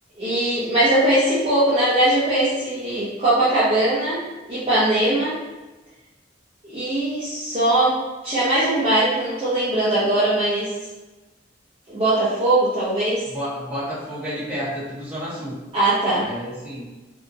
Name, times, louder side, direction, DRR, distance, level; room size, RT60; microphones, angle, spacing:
voice 1, 0.2-4.2 4.5-5.4 6.6-8.0 8.2-10.7 11.9-13.2 15.7-16.3, right 1 dB, 30° right, -12 dB, 0.8 m, -20 dB
voice 2, 13.3-15.6 16.2-16.9, equal, 10° right, -12 dB, 1.4 m, -30 dB
2.8 x 2.7 x 2.6 m, 1.2 s
head